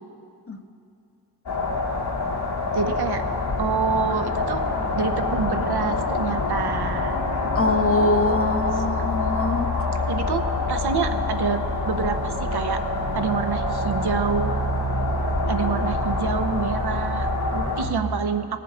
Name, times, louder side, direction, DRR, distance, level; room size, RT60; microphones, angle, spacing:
sound 1, 1.5-17.8, left 2 dB, 75° left, 2.0 m, -26 dB
voice 1, 2.7-3.2 3.6-4.6 4.9-7.2 10.0-10.4 10.7-11.6 11.9-12.8 13.1-14.5 15.5-18.6, right 5 dB, 70° right, 8 dB, 0.8 m, -27 dB
Musical instrument, 6.8-15.5, right 1 dB, 25° right, 1.2 m, -37 dB
voice 2, 7.5-9.7, left 2 dB, 35° left, 6 dB, 0.8 m, -23 dB
18.5 x 6.9 x 4.9 m, 2.5 s
cardioid pair, 50°, 41 cm